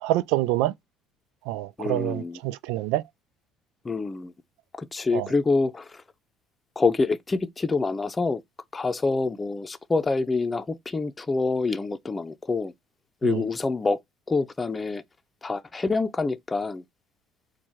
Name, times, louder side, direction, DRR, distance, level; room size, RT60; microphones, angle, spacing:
voice 1, 0.0-0.7 1.5-3.0 5.1-5.3 13.2-13.4, right 16 dB, 80° right, 0.3 m, -26 dB
voice 2, 1.8-2.4 3.8-4.3 4.8-6.0 6.8-8.4 8.7-12.7 13.2-14.0 14.3-15.0 15.4-16.8, left 3 dB, 20° left, 0.6 m, -26 dB
4.5 x 2.3 x 4.4 m
supercardioid pair, 90°, 0 cm